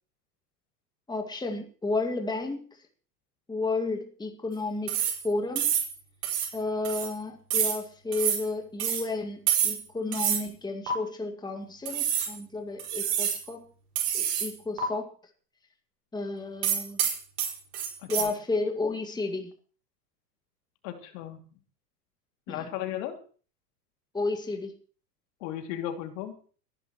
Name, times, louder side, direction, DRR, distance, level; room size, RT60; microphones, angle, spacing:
voice 1, 1.1-2.6 3.5-5.7 6.5-13.6 14.1-15.1 16.1-17.0 18.1-19.5 22.5-22.7 24.1-24.7, left 3 dB, 10° left, 4 dB, 2.1 m, -32 dB
sound 1, 4.9-5.3 5.6-5.9 6.2-6.5 6.8-7.1 7.5-7.8 8.1-8.4 8.8-9.0 9.5-9.8 10.1-10.4 10.9-11.0 11.8-12.3 12.8-13.4 14.0-14.5 14.8-14.9 16.6-18.2, right 9 dB, 55° right, 5.5 m, -27 dB
voice 2, 20.8-21.4 22.5-23.2 25.4-26.4, left 11 dB, 55° left, 5 dB, 2.7 m, -35 dB
29.5 x 10.5 x 3.1 m, 0.41 s
hypercardioid pair, 95°, 49 cm